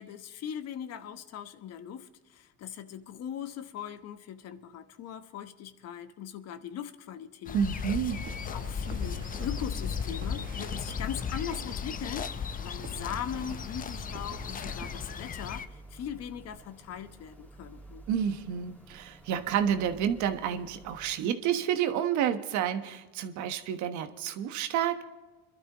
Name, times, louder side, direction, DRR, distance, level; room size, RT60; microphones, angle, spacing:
voice 1, 0.0-7.6 8.5-18.0, left 9 dB, 55° left, 10 dB, 1.1 m, -40 dB
sound 1, 7.5-15.7, left 7 dB, 25° left, 0.6 m, -36 dB
voice 2, 7.5-8.2 18.1-25.0, right 9 dB, 65° right, 8 dB, 1.3 m, -29 dB
sound 2, 8.1-15.2, right 6 dB, 40° right, 1.0 m, -46 dB
sound 3, 11.4-21.1, right 2 dB, 5° left, 3.0 m, -52 dB
26.0 x 12.5 x 3.0 m, 1.2 s
cardioid pair, 110°, 31 cm